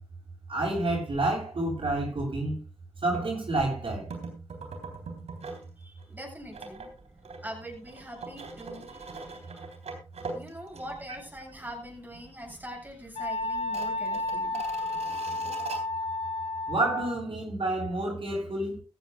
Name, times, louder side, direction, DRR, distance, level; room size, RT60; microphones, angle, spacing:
voice 1, 0.5-2.6 3.0-4.1 16.7-18.8, right 2 dB, 55° right, 7.9 m, -29 dB
sound 1, 3.1-3.3 4.1-5.7 6.0-11.3 11.6-11.7 12.1-12.7 12.9-13.0 13.6-15.8, right 4 dB, 80° right, 3.5 m, -41 dB
voice 2, 5.8-6.9 7.4-9.6 10.3-15.0, equal, 15° right, 8.0 m, -43 dB
Wind instrument woodwind instrument, 13.1-17.2, left 2 dB, 80° left, 4.7 m, -32 dB
15.5 x 14.5 x 2.3 m
cardioid pair, 50°, 11 cm